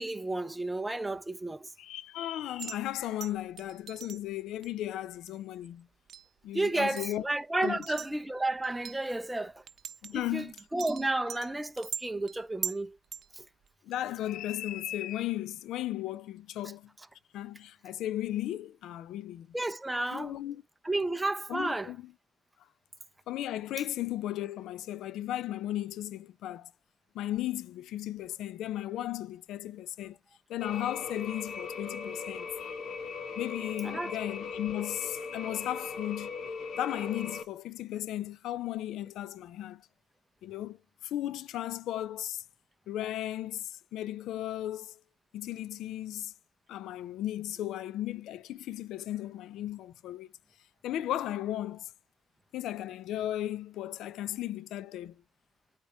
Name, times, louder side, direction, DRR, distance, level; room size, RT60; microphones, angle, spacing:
voice 1, 0.0-1.7 6.5-9.6 10.1-10.5 10.7-13.0 13.3-13.5 19.5-20.4 20.8-21.9 33.8-34.2, right 2 dB, 10° right, 0.9 m, -32 dB
voice 2, 1.8-5.9 6.4-7.2 7.6-7.8 10.0-10.5 13.8-16.9 17.3-19.5 20.1-20.6 21.5-22.1 23.3-26.7 27.1-30.2 30.5-32.8 33.3-36.3 36.7-39.9 40.4-42.4 42.9-45.0 45.3-46.3 46.7-50.3 50.8-51.9 52.5-55.2, left 13 dB, 85° left, 0.5 m, -35 dB
sound 1, 2.6-2.8 3.2-4.2 4.6-4.7 5.3-5.4 6.1-6.3 6.7-7.2 7.6-8.1 8.6-9.1 9.7-10.2 10.6-11.5 11.8-12.8 13.1-13.3 13.7-13.8, right 8 dB, 60° right, 0.8 m, -40 dB
sound 2, 30.6-37.4, left 5 dB, 65° left, 1.3 m, -39 dB
8.8 x 4.5 x 3.5 m
cardioid pair, 90°, 0 cm